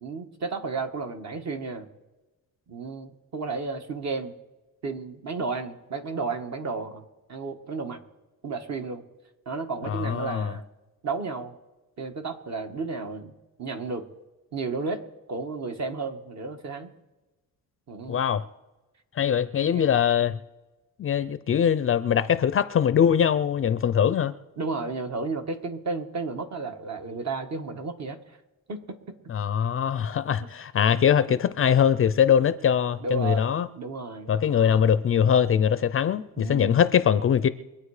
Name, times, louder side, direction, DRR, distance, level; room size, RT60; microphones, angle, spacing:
voice 1, 0.0-1.9 2.7-4.3 4.8-7.0 7.3-8.0 8.4-9.0 9.4-10.6 11.0-11.5 12.0-13.3 13.6-14.1 14.5-15.0 15.3-16.9 17.9-18.2 19.7-19.9 24.6-28.2 28.7-29.2 30.4-30.5 30.9-31.4 33.0-34.8 36.4-36.8, right 4 dB, 50° right, 6 dB, 1.5 m, -33 dB
voice 2, 9.8-10.5 18.1-18.4 19.2-20.4 21.0-24.3 29.3-33.7 34.3-37.5, left 8 dB, 40° left, 13 dB, 0.5 m, -22 dB
24.0 x 8.6 x 4.9 m, 1.1 s
cardioid pair, 145°, 36 cm